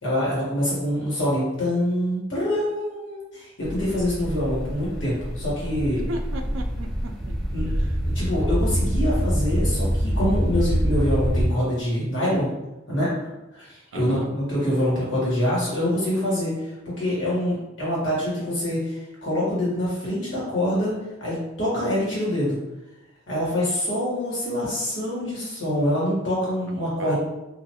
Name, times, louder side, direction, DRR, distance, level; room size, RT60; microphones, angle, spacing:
voice 1, 0.0-6.0 7.5-7.7 8.1-12.5 12.9-13.1 13.5-16.5 17.0-20.9 21.2-22.6 23.3-27.2, equal, 70° left, -8 dB, 1.3 m, -25 dB
sound 1, 3.6-11.5, equal, ahead, 0.5 m, -25 dB
voice 2, 6.1-7.4 7.7-8.0 13.9-14.3 27.0-27.2, right 2 dB, 90° right, 4 dB, 0.4 m, -35 dB
2.4 x 2.3 x 2.8 m, 1.0 s
head